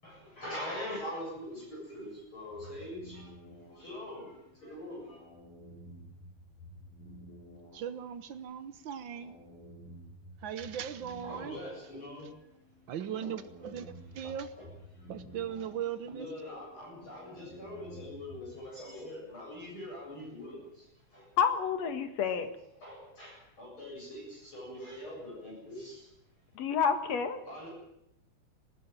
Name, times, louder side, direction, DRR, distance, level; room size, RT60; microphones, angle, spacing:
voice 1, 0.0-3.3 3.7-5.2 10.7-12.3 13.2-13.3 13.6-14.9 15.3-21.3 22.2-26.1 26.6-26.7 27.5-27.7, left 1 dB, 40° left, -4 dB, 8.8 m, -44 dB
sound 1, 2.5-18.5, equal, 80° left, 8.3 m, -53 dB
voice 2, 7.7-9.4 10.4-11.6 12.9-14.5 15.1-16.3, right 9 dB, 85° right, 12 dB, 1.0 m, -38 dB
voice 3, 21.4-22.5 26.6-27.4, left 7 dB, 60° left, 8 dB, 2.8 m, -29 dB
20.5 x 18.5 x 9.0 m, 0.82 s
omnidirectional pair, 3.5 m